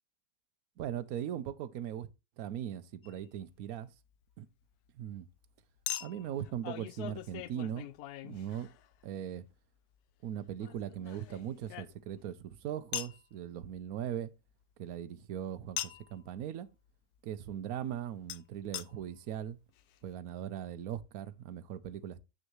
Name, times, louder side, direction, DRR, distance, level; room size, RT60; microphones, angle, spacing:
voice 1, 0.8-2.1 2.4-3.9 4.4-4.5 4.9-5.3 6.0-7.9 8.2-8.7 9.0-9.4 10.2-14.3 14.8-16.7 17.2-19.6 20.0-22.2, right 10 dB, 70° right, 1.1 m, -39 dB
Chink clink, 3.0-3.2 5.9-9.0 10.6-12.3 12.9-13.2 15.8-16.1 18.3-18.4 18.7-18.9 19.5-19.6 19.8-19.9, left 12 dB, 80° left, 1.1 m, -41 dB
8.2 x 6.4 x 3.0 m
omnidirectional pair, 1.7 m